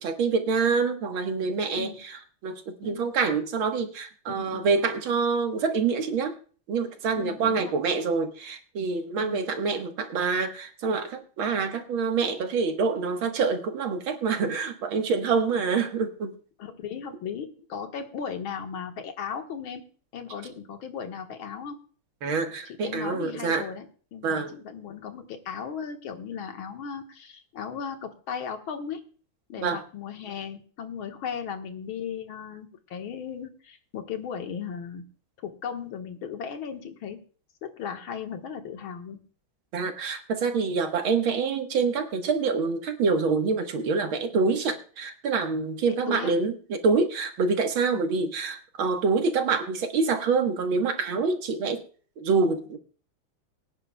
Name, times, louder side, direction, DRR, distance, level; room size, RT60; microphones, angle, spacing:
voice 1, 0.0-6.4 6.7-16.3 22.2-23.7 24.2-24.6 29.6-29.8 39.7-51.8 52.2-52.8, right 4 dB, 80° right, 5 dB, 2.2 m, -26 dB
voice 2, 4.3-4.7 7.2-7.7 9.2-9.4 16.6-21.8 22.7-23.9 24.1-29.0 29.5-35.0 35.4-37.2 37.6-39.2 44.3-44.5 46.1-46.3 47.9-48.0, left 7 dB, 85° left, 5 dB, 2.2 m, -36 dB
23.5 x 9.8 x 2.2 m, 0.41 s
omnidirectional pair, 2.2 m